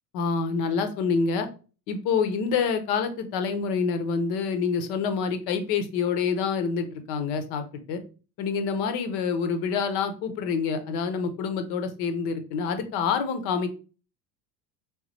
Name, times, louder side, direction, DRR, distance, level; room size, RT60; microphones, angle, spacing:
voice 1, 0.1-1.5 1.9-8.0 8.4-13.7, left 5 dB, 55° left, 8 dB, 0.8 m, -27 dB
3.4 x 3.2 x 3.2 m, 0.35 s
figure-of-eight pair, 70°, 50 cm